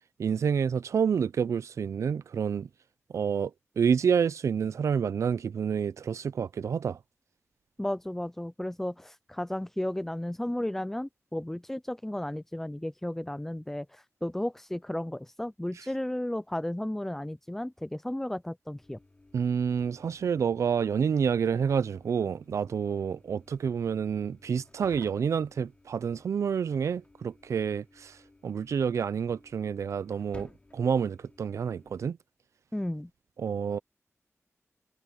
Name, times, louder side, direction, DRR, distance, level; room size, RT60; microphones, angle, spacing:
voice 1, 0.2-2.7 3.1-3.5 3.8-7.0 19.3-28.2 28.4-32.2 33.4-33.8, right 7 dB, 75° right, 0.5 m, -28 dB
voice 2, 7.8-19.0 32.7-33.1, left 1 dB, 5° left, 0.3 m, -34 dB
sound 1, 18.8-32.0, left 2 dB, 25° left, 2.9 m, -57 dB
wide cardioid pair, 150°, 5 cm